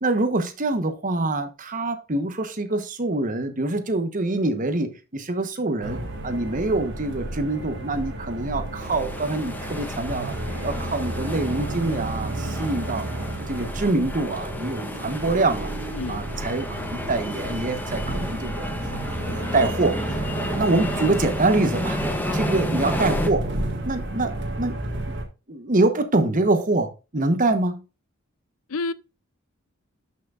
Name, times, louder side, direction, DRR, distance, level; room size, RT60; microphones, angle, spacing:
voice 1, 0.0-10.4 10.6-13.1 13.5-15.7 16.1-18.7 19.1-22.0 22.3-23.4 23.8-24.8 25.1-25.2 25.5-27.8, right 2 dB, 40° right, 1.1 m, -25 dB
sound 1, 5.8-25.3, right 1 dB, 55° right, 1.7 m, -32 dB
sound 2, 8.8-23.3, left 1 dB, 10° left, 1.1 m, -32 dB
voice 2, 15.9-16.3 22.2-22.5 28.7-28.9, left 3 dB, 85° left, 0.6 m, -30 dB
12.0 x 6.0 x 2.5 m
head